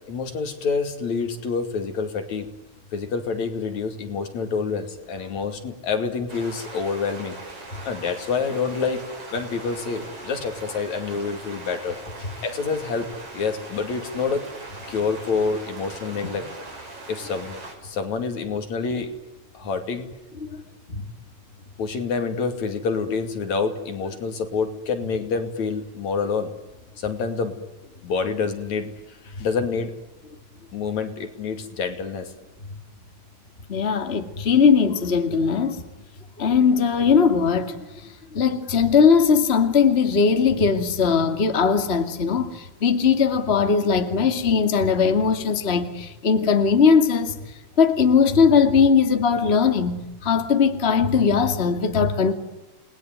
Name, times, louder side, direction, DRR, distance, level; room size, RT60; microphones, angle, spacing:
voice 1, 0.1-2.5 2.9-7.4 7.9-9.0 9.3-14.4 14.9-16.5 17.1-17.5 17.8-19.1 19.5-20.1 21.8-26.5 27.0-27.6 28.0-28.9 29.2-29.9 30.7-32.3, left 5 dB, 70° left, 3.9 m, -27 dB
sound 1, 6.3-17.8, right 2 dB, 50° right, 7.0 m, -40 dB
voice 2, 33.7-35.8 36.4-37.8 38.3-47.4 47.8-52.3, left 6 dB, 25° left, 2.1 m, -19 dB
30.0 x 20.5 x 9.5 m
omnidirectional pair, 3.3 m